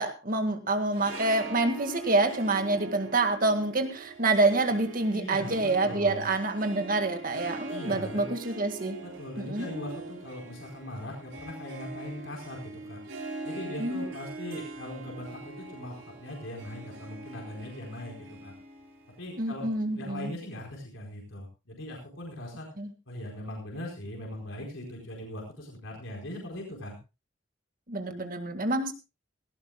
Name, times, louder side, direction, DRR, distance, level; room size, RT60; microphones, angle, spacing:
voice 1, 0.0-9.0 9.4-9.7 13.8-14.1 19.4-20.3 22.8-22.9 27.9-28.9, right 2 dB, 45° right, 7 dB, 1.9 m, -27 dB
Harp, 0.8-20.2, right 3 dB, 75° right, 3.9 m, -43 dB
voice 2, 5.1-6.3 7.7-8.3 9.0-13.0 13.4-18.5 19.2-22.7 23.1-27.0, left 1 dB, 75° left, 0 dB, 4.5 m, -40 dB
18.0 x 17.0 x 2.3 m, 0.28 s
head